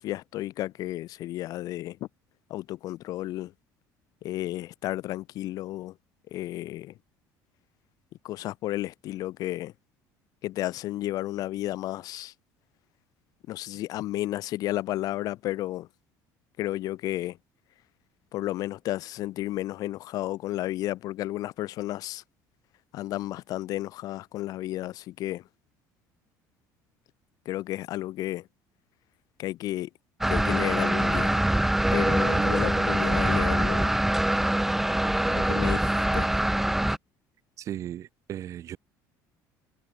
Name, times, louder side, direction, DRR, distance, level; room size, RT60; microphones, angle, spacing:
voice 1, 0.0-2.1 2.5-3.5 4.2-6.0 6.3-6.9 8.2-9.7 10.4-12.3 13.5-15.9 16.6-17.4 18.3-22.2 22.9-25.5 27.4-28.5 29.4-29.9 30.3-31.5 31.9-33.9 35.3-36.3, left 15 dB, 55° left, 2.9 m, -32 dB
sound 1, 30.2-37.0, right 1 dB, 5° right, 0.6 m, -24 dB
voice 2, 37.6-38.8, right 11 dB, 45° right, 2.7 m, -36 dB
cardioid pair, 140°, 7 cm